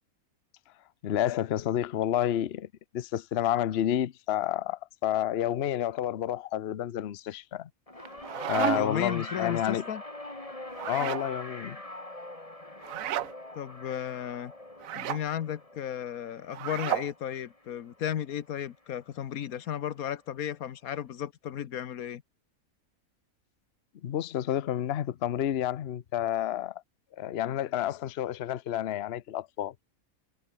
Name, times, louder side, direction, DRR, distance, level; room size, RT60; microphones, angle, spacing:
voice 1, 1.0-2.7 2.9-7.7 8.5-9.8 10.8-11.8 24.0-26.8 27.2-29.7, left 11 dB, 55° left, 0.9 m, -30 dB
sound 1, 7.9-18.3 19.3-19.4, left 1 dB, 25° left, 3.5 m, -43 dB
sound 2, 8.0-9.1 10.7-11.3 12.8-13.3 14.8-15.2 16.5-17.1, right 12 dB, 70° right, 1.1 m, -32 dB
voice 2, 8.7-10.0 13.5-14.5 14.9-22.2, left 10 dB, 90° left, 1.4 m, -34 dB
omnidirectional pair, 1.5 m